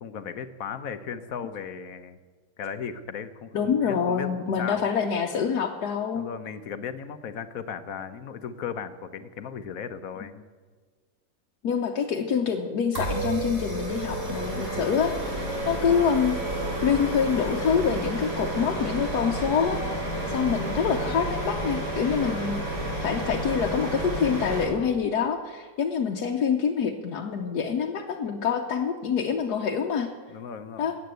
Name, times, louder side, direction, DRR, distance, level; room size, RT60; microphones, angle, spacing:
voice 1, 0.0-2.2 2.6-4.8 6.1-10.4 20.2-20.6 30.3-30.9, left 7 dB, 65° left, 11 dB, 1.2 m, -36 dB
voice 2, 3.5-6.3 10.2-10.3 11.6-16.4 16.8-19.8 20.3-22.6 23.0-30.1 30.8-30.9, left 6 dB, 80° left, 1 dB, 1.4 m, -26 dB
sound 1, 12.9-24.6, right 1 dB, 50° right, 3.7 m, -30 dB
14.5 x 8.5 x 9.1 m, 1.5 s
omnidirectional pair, 1.7 m